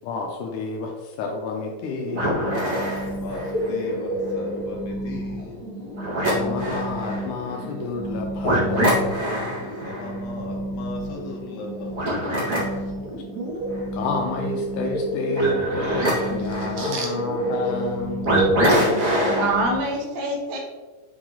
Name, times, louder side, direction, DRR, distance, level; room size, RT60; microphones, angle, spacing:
voice 1, 0.0-2.8 6.4-9.7 13.1-13.4 13.9-18.5, left 2 dB, 85° left, 1 dB, 2.2 m, -30 dB
sound 1, 2.1-19.8, equal, 30° right, 2.0 m, -26 dB
voice 2, 3.2-5.7 9.8-12.4 12.6-12.9, left 2 dB, 60° left, -1 dB, 2.2 m, -37 dB
voice 3, 19.3-20.6, right 2 dB, 85° right, -1 dB, 2.8 m, -25 dB
6.5 x 5.0 x 3.7 m, 1.3 s
omnidirectional pair, 3.5 m